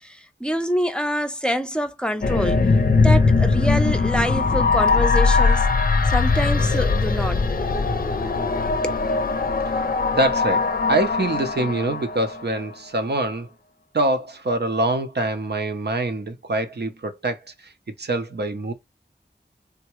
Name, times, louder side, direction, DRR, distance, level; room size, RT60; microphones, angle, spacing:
voice 1, 0.0-2.6 3.0-5.7 6.1-7.4 8.8-9.0, equal, 5° left, 0.5 m, -26 dB
sound 1, 2.2-12.6, left 4 dB, 55° left, 0.5 m, -20 dB
voice 2, 10.1-13.5 13.9-17.7 18.0-18.7, right 2 dB, 65° right, 0.7 m, -24 dB
3.4 x 2.2 x 2.9 m
wide cardioid pair, 55°, 18 cm